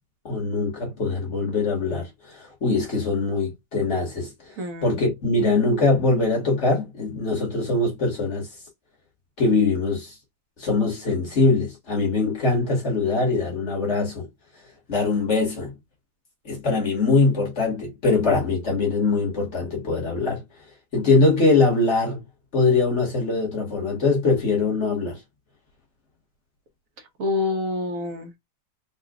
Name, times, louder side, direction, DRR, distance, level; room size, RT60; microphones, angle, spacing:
voice 1, 0.3-4.5 4.8-8.5 9.4-10.2 10.6-14.3 14.9-15.7 16.5-20.4 20.9-22.2 22.5-25.2, left 3 dB, 45° left, 1.7 m, -22 dB
voice 2, 4.6-5.0 27.2-28.4, left 3 dB, 60° right, 1.1 m, -27 dB
3.8 x 2.4 x 3.6 m
omnidirectional pair, 1.8 m